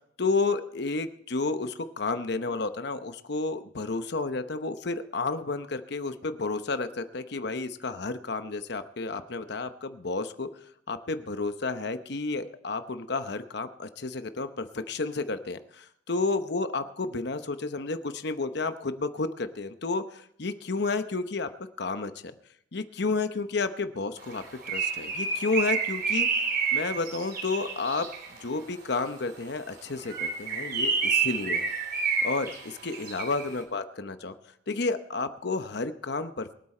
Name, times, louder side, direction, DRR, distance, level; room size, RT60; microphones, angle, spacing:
voice 1, 0.2-10.5 10.9-21.5 21.8-22.3 22.7-26.3 26.7-28.1 28.4-31.7 32.2-34.3 34.7-36.5, left 3 dB, 65° left, 10 dB, 0.9 m, -31 dB
Bird, 24.3-28.4 30.0-33.5, right 5 dB, 55° right, 3.4 m, -29 dB
23.5 x 8.7 x 4.4 m, 0.68 s
head